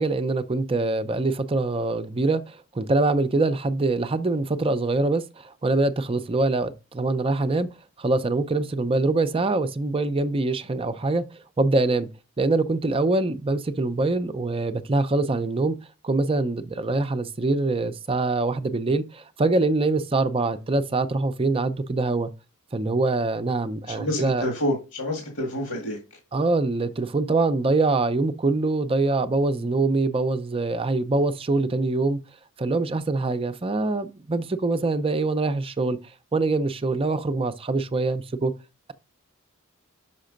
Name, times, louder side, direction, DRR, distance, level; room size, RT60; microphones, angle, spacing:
voice 1, 0.0-7.7 8.0-12.1 12.4-15.8 16.0-22.3 22.7-24.5 26.3-32.2 32.6-36.0 36.3-38.5, right 3 dB, 25° right, 0.5 m, -24 dB
voice 2, 23.9-26.0, equal, 85° left, 1.9 m, -28 dB
5.8 x 5.4 x 5.1 m
head